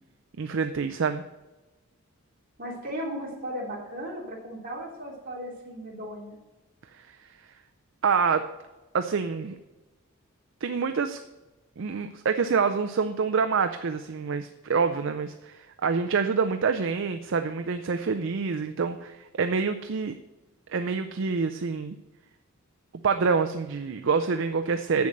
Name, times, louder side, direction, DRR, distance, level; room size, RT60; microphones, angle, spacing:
voice 1, 0.4-1.2 6.9-7.2 8.0-8.5 8.9-9.6 10.6-11.2 11.8-20.1 20.7-22.0 23.0-25.1, right 5 dB, 60° right, 8 dB, 0.5 m, -26 dB
voice 2, 2.6-6.4, equal, 40° right, -4 dB, 3.2 m, -36 dB
7.7 x 7.0 x 6.5 m, 1.1 s
head